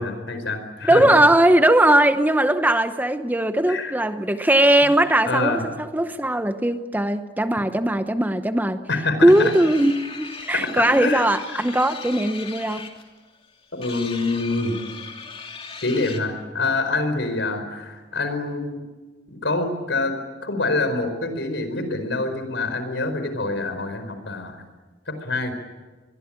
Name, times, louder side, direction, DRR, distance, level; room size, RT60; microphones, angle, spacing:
voice 1, 0.0-1.1 3.7-3.9 4.4-4.5 5.2-5.6 8.9-9.5 10.8-11.2 11.5-11.6 13.7-14.7 15.8-18.8 19.3-24.6 25.1-25.5, left 3 dB, 70° left, 9 dB, 4.7 m, -26 dB
voice 2, 0.9-5.6 5.9-8.8 9.2-12.8, right 1 dB, 10° right, 9 dB, 0.8 m, -19 dB
sound 1, 9.3-16.2, left 5 dB, 30° left, 3.0 m, -38 dB
25.0 x 21.5 x 8.9 m, 1.3 s
head